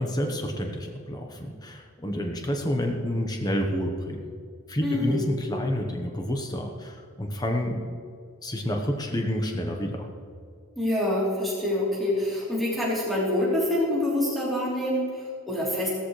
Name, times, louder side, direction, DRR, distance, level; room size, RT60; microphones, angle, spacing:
voice 1, 0.0-4.2 4.7-7.9 8.4-10.1, equal, 20° left, 3 dB, 1.1 m, -29 dB
voice 2, 4.8-5.2 10.8-15.9, left 1 dB, ahead, -8 dB, 3.5 m, -26 dB
17.5 x 13.5 x 3.3 m, 2.2 s
head